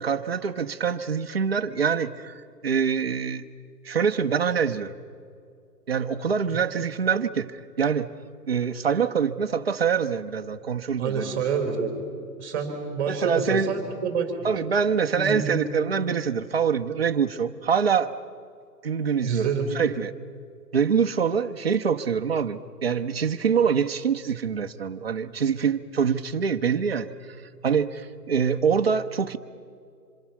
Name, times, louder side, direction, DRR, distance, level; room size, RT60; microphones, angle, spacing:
voice 1, 0.0-3.5 3.8-5.0 5.9-8.1 8.5-11.5 13.1-13.7 14.4-18.1 18.8-19.5 19.7-20.1 20.7-29.4, right 6 dB, 40° right, 6 dB, 0.8 m, -25 dB
voice 2, 11.0-11.9 12.4-14.5 15.1-15.6 19.2-19.7, right 6 dB, 10° right, 3 dB, 3.4 m, -27 dB
27.0 x 22.5 x 5.9 m, 2.3 s
hypercardioid pair, 180°, 49 cm